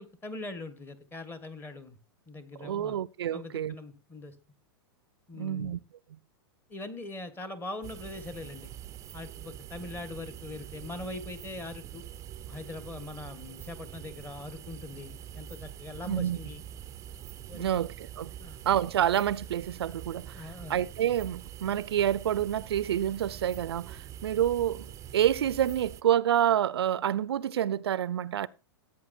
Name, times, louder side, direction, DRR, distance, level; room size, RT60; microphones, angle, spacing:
voice 1, 0.0-2.0 2.3-3.0 3.3-4.3 5.3-5.8 6.7-8.7 9.1-12.1 12.5-16.6 17.5-17.8 18.4-18.6 20.3-20.8, left 2 dB, 15° left, 1.5 m, -42 dB
voice 2, 2.6-3.7 5.4-5.8 16.1-16.4 17.5-18.3 18.7-28.5, right 10 dB, 85° right, 0.5 m, -28 dB
sound 1, 7.8-26.0, right 10 dB, 25° right, 0.5 m, -45 dB
15.5 x 8.7 x 2.6 m
hypercardioid pair, 125°, 13 cm